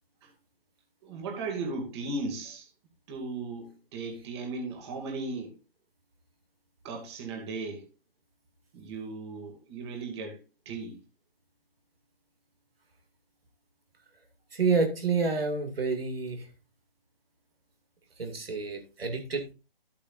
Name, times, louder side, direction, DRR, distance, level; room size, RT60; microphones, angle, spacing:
voice 1, 1.0-2.7 3.1-5.5 6.8-7.8 8.7-10.4 10.7-11.0, right 3 dB, 25° right, 2.4 m, -36 dB
voice 2, 14.5-16.5 18.2-19.5, right 4 dB, 75° right, 2.6 m, -28 dB
13.5 x 8.5 x 2.6 m
hypercardioid pair, 155°, 30 cm